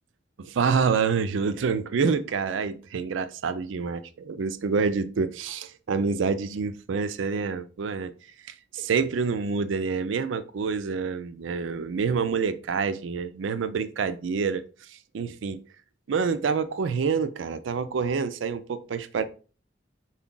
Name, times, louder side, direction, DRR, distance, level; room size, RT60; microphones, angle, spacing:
voice 1, 0.4-8.1 8.7-14.6 14.9-15.6 16.1-19.2, right 5 dB, 85° right, 0.4 m, -27 dB
4.4 x 2.3 x 3.8 m
head